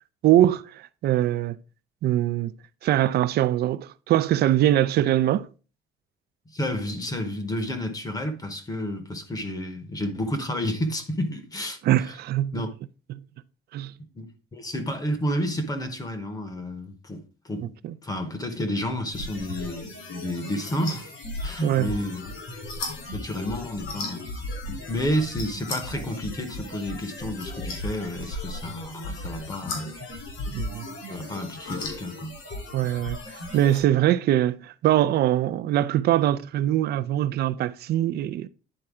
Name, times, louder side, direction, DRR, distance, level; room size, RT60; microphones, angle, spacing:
voice 1, 0.2-1.6 2.0-2.5 2.8-5.5 11.8-12.6 13.7-13.9 17.8-17.9 21.6-21.9 30.5-30.9 32.7-33.2 33.5-38.5, right 13 dB, 55° right, 0.4 m, -22 dB
voice 2, 6.5-11.8 12.5-12.7 14.0-17.7 18.0-21.1 21.4-22.2 23.1-24.2 24.7-29.9 31.1-32.3, equal, 20° left, 0.9 m, -30 dB
sound 1, 19.1-33.8, left 2 dB, 75° left, 3.2 m, -36 dB
9.9 x 4.4 x 3.6 m
cardioid pair, 170°, 20 cm